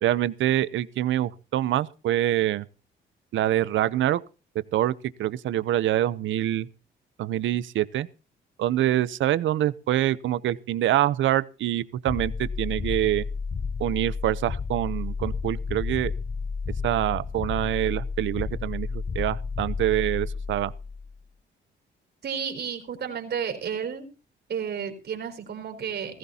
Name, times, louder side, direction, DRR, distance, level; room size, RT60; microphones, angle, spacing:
voice 1, 0.0-2.7 3.3-4.2 4.7-4.9 5.2-6.7 7.2-8.1 8.6-13.2 13.8-16.1 16.8-20.7, right 13 dB, 75° right, 0.8 m, -25 dB
sound 1, 12.1-21.2, left 5 dB, 30° left, 0.6 m, -31 dB
voice 2, 22.2-24.1 24.5-26.2, right 7 dB, 55° right, 4.6 m, -32 dB
18.5 x 15.0 x 2.9 m
cardioid pair, 90°, 20 cm